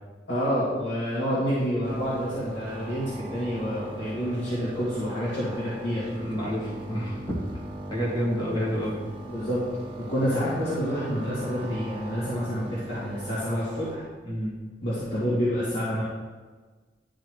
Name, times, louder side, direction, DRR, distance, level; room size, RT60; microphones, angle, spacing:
voice 1, 0.3-6.1 8.6-8.7 9.3-9.6 10.1-14.0 14.8-16.0, equal, 70° left, -11 dB, 2.1 m, -28 dB
sound 1, 1.8-14.0, right 2 dB, 30° right, 1.2 m, -40 dB
voice 2, 6.2-7.3 7.9-9.0 14.2-14.6, equal, 25° left, -6 dB, 2.1 m, -29 dB
11.0 x 4.0 x 3.2 m, 1.4 s
head